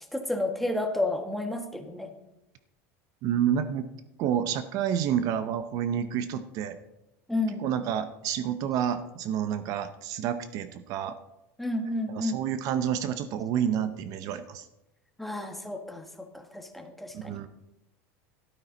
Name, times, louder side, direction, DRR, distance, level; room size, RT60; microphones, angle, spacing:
voice 1, 0.1-2.1 7.3-7.7 11.6-12.4 15.2-17.4, left 2 dB, ahead, 4 dB, 1.3 m, -31 dB
voice 2, 3.2-3.9 4.2-6.8 7.6-11.2 12.1-14.7 17.1-17.5, right 9 dB, 50° right, 11 dB, 0.7 m, -29 dB
13.0 x 12.0 x 4.0 m, 0.94 s
supercardioid pair, 130°, 8 cm